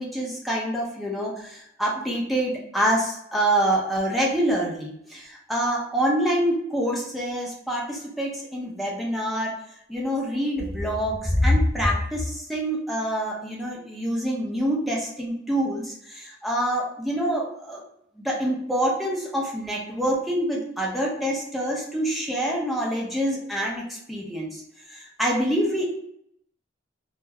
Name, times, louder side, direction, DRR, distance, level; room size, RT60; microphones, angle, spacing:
voice 1, 0.0-9.6 9.9-17.8 18.2-24.6 24.9-25.9, equal, ahead, -3 dB, 0.6 m, -26 dB
2.2 x 2.1 x 3.3 m, 0.75 s
head